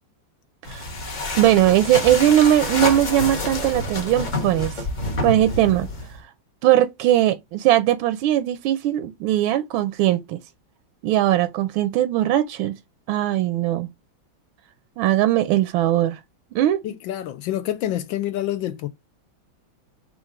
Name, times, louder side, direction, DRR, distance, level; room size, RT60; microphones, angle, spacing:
sound 1, 0.6-6.2, left 2 dB, 40° left, 0.6 m, -28 dB
voice 1, 1.4-4.9 5.2-5.9 6.6-10.4 11.0-12.7 13.1-13.9 15.0-16.2 16.5-16.8, right 13 dB, 85° right, 1.4 m, -19 dB
voice 2, 16.8-18.9, left 12 dB, 80° left, 1.3 m, -27 dB
4.5 x 2.4 x 4.7 m
omnidirectional pair, 2.2 m